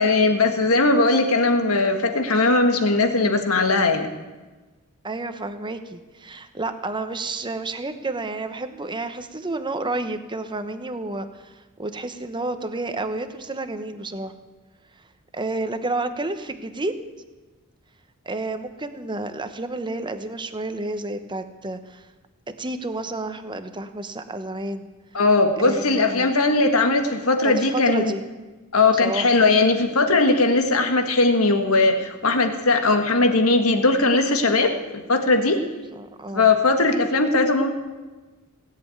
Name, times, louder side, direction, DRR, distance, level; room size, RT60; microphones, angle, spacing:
voice 1, 0.0-4.1 25.1-28.2 28.7-35.6 36.3-37.7, left 3 dB, 80° left, 6 dB, 1.7 m, -19 dB
voice 2, 5.0-14.3 15.3-17.0 18.2-22.1 22.6-24.9 25.6-25.8 26.1-26.3 27.4-28.2 28.9-29.4 36.0-36.5, right 2 dB, 20° right, 9 dB, 1.0 m, -30 dB
17.5 x 7.8 x 9.3 m, 1.2 s
head